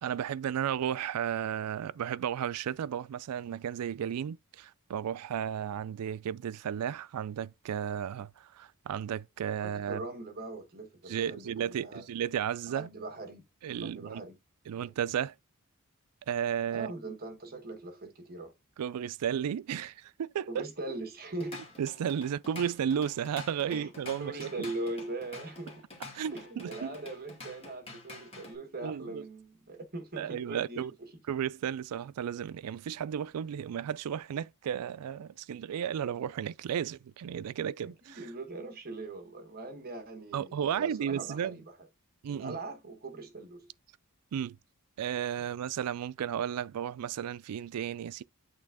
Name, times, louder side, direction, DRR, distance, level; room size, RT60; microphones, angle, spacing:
voice 1, 0.0-10.0 11.1-12.9 13.6-14.2 14.7-15.3 16.3-16.9 18.8-20.7 21.8-24.5 26.1-26.9 28.8-29.2 30.2-30.9 31.3-38.3 40.3-41.6 42.2-42.6 44.3-44.6 45.0-48.2, right 9 dB, 85° right, 0.3 m, -34 dB
voice 2, 9.6-12.0 12.7-13.4 13.8-14.4 14.7-14.9 16.7-18.5 20.5-21.7 23.7-23.9 24.2-25.8 26.3-31.1 38.0-41.7 42.3-43.7 45.4-45.5, right 2 dB, 45° right, 1.2 m, -41 dB
Drum kit / Drum, 21.2-28.6, left 3 dB, 25° left, 2.2 m, -47 dB
8.7 x 3.4 x 3.6 m
head